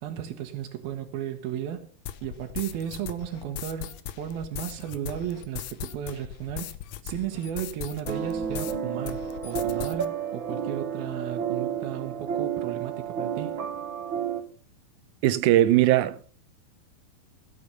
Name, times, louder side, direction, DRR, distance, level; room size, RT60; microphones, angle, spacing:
voice 1, 0.0-1.9 2.2-6.7 7.0-13.6, right 10 dB, 90° right, 3.1 m, -34 dB
sound 1, 2.1-8.8 9.1-10.1, left 11 dB, 70° left, 1.7 m, -39 dB
sound 2, 8.1-14.4, right 8 dB, 45° right, 1.9 m, -31 dB
voice 2, 15.2-16.2, right 14 dB, 75° right, 2.1 m, -20 dB
15.5 x 8.7 x 6.8 m
omnidirectional pair, 4.1 m